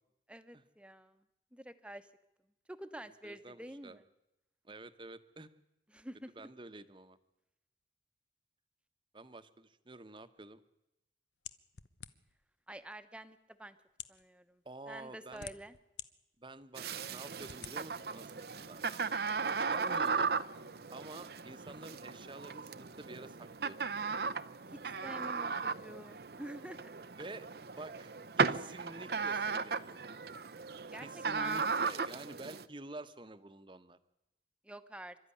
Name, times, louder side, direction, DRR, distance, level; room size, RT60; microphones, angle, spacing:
voice 1, 0.3-1.2 1.5-2.1 2.7-4.0 5.9-6.5 12.7-13.8 14.1-14.6 14.9-15.7 19.1-19.5 25.0-26.9 30.9-31.8 34.6-35.2, right 1 dB, 5° right, 10 dB, 1.0 m, -48 dB
voice 2, 3.0-4.0 4.6-5.5 6.4-7.2 9.1-10.6 14.6-15.5 16.4-18.8 19.6-20.3 20.9-23.9 27.2-28.1 28.4-30.0 31.0-34.0, right 2 dB, 30° right, 11 dB, 1.1 m, -49 dB
sound 1, 11.5-12.4 13.2-13.3 13.9-14.2 15.0-16.1 16.6-16.7 17.4-17.8, left 9 dB, 90° left, 1.0 m, -47 dB
sound 2, 16.8-32.6, right 5 dB, 60° right, 0.7 m, -36 dB
27.0 x 13.0 x 10.0 m, 0.92 s
head